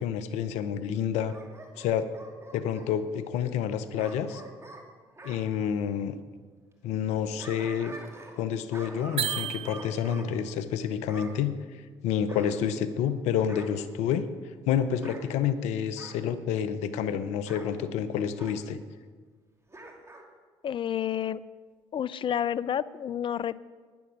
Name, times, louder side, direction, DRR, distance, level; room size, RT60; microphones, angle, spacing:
voice 1, 0.0-1.3 1.8-2.1 2.5-4.4 5.2-6.2 6.8-8.0 8.4-11.5 12.0-14.3 14.7-18.8, left 8 dB, 75° left, 12 dB, 0.8 m, -29 dB
Bark / Growling, 1.3-2.9 4.0-5.4 7.1-8.4 8.7-10.3 11.1-11.4 12.3-13.1 13.5-13.8 14.9-15.3 16.0-16.2 17.5-17.7 18.4-18.6 19.7-20.3 20.6-20.7, right 2 dB, 25° right, 2.4 m, -46 dB
sound 1, 9.2-10.3, right 9 dB, 55° right, 0.8 m, -33 dB
voice 2, 20.6-21.4 21.9-23.6, left 9 dB, 45° left, 18 dB, 0.5 m, -30 dB
10.5 x 9.9 x 6.4 m, 1.5 s
hypercardioid pair, 60°, 12 cm